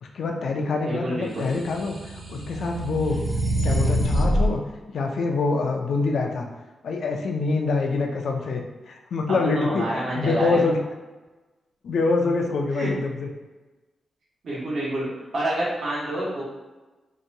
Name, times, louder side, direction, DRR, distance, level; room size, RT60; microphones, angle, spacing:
voice 1, 0.0-3.2 3.6-4.6 4.9-6.5 6.8-9.8 10.1-10.8 11.8-13.3, left 3 dB, 70° left, 2 dB, 0.4 m, -25 dB
voice 2, 0.8-1.5 9.5-10.6 12.7-12.9 14.4-16.4, right 1 dB, 60° right, -6 dB, 1.0 m, -28 dB
sound 1, 1.6-4.5, equal, 35° right, 0.5 m, -24 dB
2.8 x 2.2 x 2.6 m, 1.2 s
wide cardioid pair, 130°, 0 cm